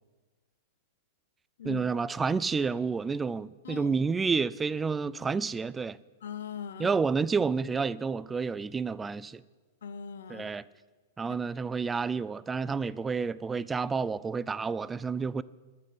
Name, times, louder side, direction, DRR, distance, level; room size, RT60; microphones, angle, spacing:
voice 1, 1.6-6.0 6.8-9.4 10.3-10.6 11.2-15.4, right 5 dB, 15° right, 0.3 m, -30 dB
voice 2, 3.6-4.0 6.2-6.9 9.8-10.5 11.3-11.4, left 7 dB, 75° left, 0.7 m, -40 dB
11.0 x 7.5 x 8.0 m
hypercardioid pair, 125°, 0 cm